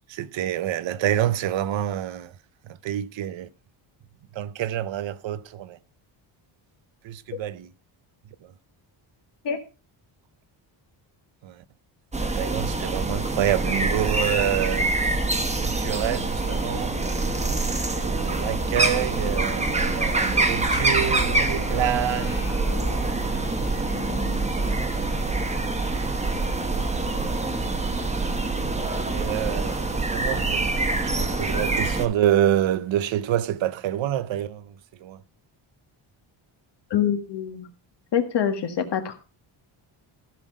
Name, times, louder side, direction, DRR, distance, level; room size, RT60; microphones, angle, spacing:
voice 1, 0.1-2.3 2.6-3.5 4.3-5.8 7.0-7.7 8.4-8.5 11.4-11.6 12.2-15.0 15.6-17.0 17.9-22.4 22.9-23.0 23.7-23.8 27.2-27.3 29.1-30.7 31.0-34.7 35.0-35.2, right 11 dB, 65° right, 0.8 m, -27 dB
sound 1, 12.1-32.0, right 2 dB, 15° right, 1.0 m, -25 dB
sound 2, 20.7-30.4 30.7-30.8 31.3-31.6, left 1 dB, 35° left, 2.1 m, -39 dB
voice 2, 36.9-37.7 38.1-39.2, left 8 dB, 55° left, 1.8 m, -25 dB
15.0 x 6.0 x 5.0 m
wide cardioid pair, 170°, 49 cm